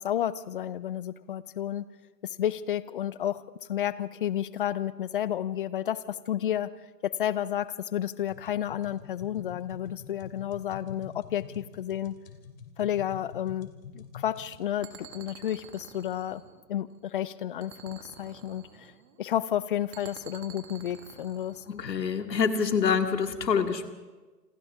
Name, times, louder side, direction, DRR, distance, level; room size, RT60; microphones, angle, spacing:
voice 1, 0.0-1.9 2.2-3.4 3.7-6.7 7.0-12.2 12.8-13.7 13.9-16.4 16.7-18.9 19.2-21.6, left 11 dB, 35° left, 17 dB, 0.6 m, -31 dB
sound 1, 8.3-14.6, left 6 dB, 55° left, 3.1 m, -46 dB
sound 2, 14.8-17.1 17.6-19.2 19.9-21.8, right 8 dB, 30° right, 2.1 m, -49 dB
voice 2, 21.7-23.9, left 6 dB, 80° left, 5 dB, 2.3 m, -26 dB
27.5 x 25.5 x 3.7 m, 1.3 s
hypercardioid pair, 145°, 49 cm